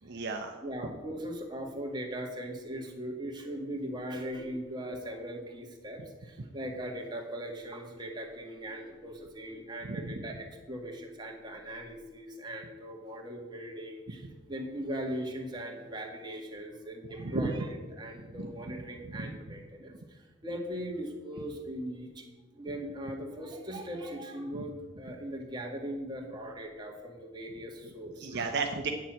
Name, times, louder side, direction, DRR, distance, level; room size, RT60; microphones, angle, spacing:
voice 1, 0.0-0.6 9.8-10.0 17.2-17.4 18.4-18.5 19.2-19.3 28.2-28.9, right 4 dB, 55° right, 4 dB, 0.8 m, -33 dB
voice 2, 0.6-22.2 22.5-28.5, equal, 20° right, 0 dB, 1.8 m, -39 dB
8.9 x 7.2 x 7.6 m, 1.2 s
head